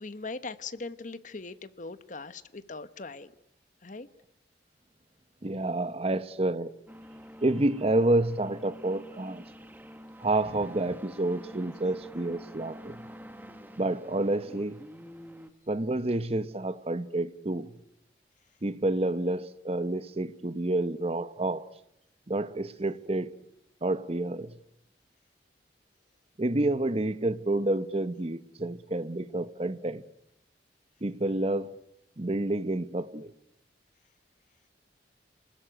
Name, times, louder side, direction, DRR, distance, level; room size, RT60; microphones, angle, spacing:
voice 1, 0.0-3.3 3.8-4.1, left 3 dB, 45° left, 1.1 m, -40 dB
voice 2, 5.4-6.7 7.4-9.4 10.2-13.0 13.8-14.8 15.7-17.7 18.6-21.7 22.3-23.3 23.8-24.6 26.4-30.0 31.0-31.8 32.2-33.3, right 2 dB, 35° right, 1.0 m, -29 dB
sound 1, 6.9-15.5, equal, 10° right, 1.5 m, -47 dB
29.0 x 20.5 x 9.0 m
head